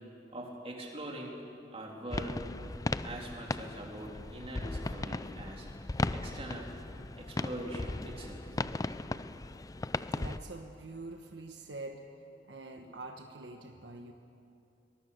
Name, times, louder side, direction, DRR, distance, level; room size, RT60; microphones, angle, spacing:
voice 1, 0.3-1.4 1.7-2.4 2.9-5.7 6.1-8.5 12.8-12.9, right 1 dB, 35° right, 0 dB, 3.4 m, -43 dB
sound 1, 2.1-10.4, left 2 dB, 20° left, 0.5 m, -37 dB
voice 2, 10.1-12.0 12.5-14.1, right 2 dB, 75° right, 4 dB, 1.4 m, -45 dB
23.5 x 20.5 x 6.8 m, 2.6 s
head